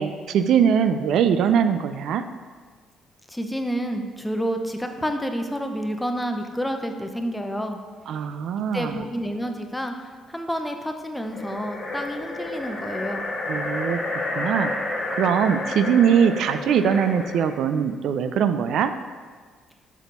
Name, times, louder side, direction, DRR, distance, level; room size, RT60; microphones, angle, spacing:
voice 1, 0.0-2.2 8.1-9.0 13.5-14.0 14.4-18.9, right 7 dB, 70° right, 10 dB, 0.3 m, -22 dB
voice 2, 3.3-7.8 8.7-13.3, equal, 5° left, 5 dB, 0.7 m, -29 dB
sound 1, 11.2-17.6, left 2 dB, 25° left, 1.6 m, -30 dB
6.2 x 4.1 x 5.3 m, 1.5 s
cardioid pair, 90°, 0 cm